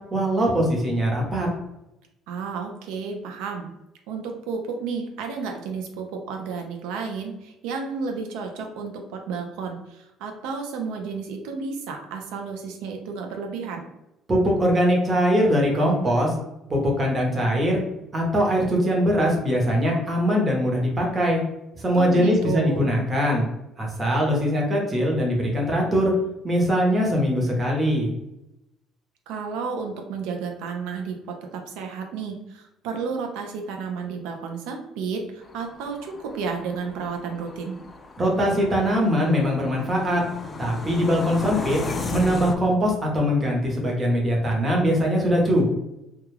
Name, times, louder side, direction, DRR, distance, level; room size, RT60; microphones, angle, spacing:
voice 1, 0.1-1.5 14.3-16.3 16.7-17.8 18.1-21.4 21.8-23.4 23.8-26.1 26.4-28.1 38.2-40.2 40.6-41.8 42.1-45.7, equal, 25° right, -1 dB, 0.9 m, -22 dB
voice 2, 2.3-3.7 4.1-13.9 21.9-22.9 29.3-37.8, right 5 dB, 85° right, 3 dB, 0.4 m, -32 dB
sound 1, 35.4-42.6, left 3 dB, 25° left, 0.3 m, -35 dB
2.3 x 2.2 x 3.2 m, 0.90 s
cardioid pair, 110°, 0 cm